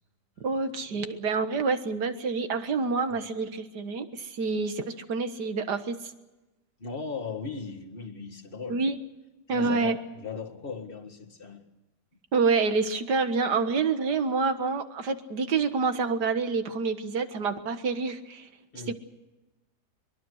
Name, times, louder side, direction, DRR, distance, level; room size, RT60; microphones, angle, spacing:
voice 1, 0.4-6.0 8.7-9.0 9.5-10.0 12.3-18.5 18.9-19.0, right 4 dB, 75° right, 2.0 m, -27 dB
voice 2, 6.8-8.8 9.5-11.6 18.7-18.9, left 5 dB, 35° left, 1.9 m, -38 dB
23.0 x 22.5 x 6.4 m
omnidirectional pair, 1.8 m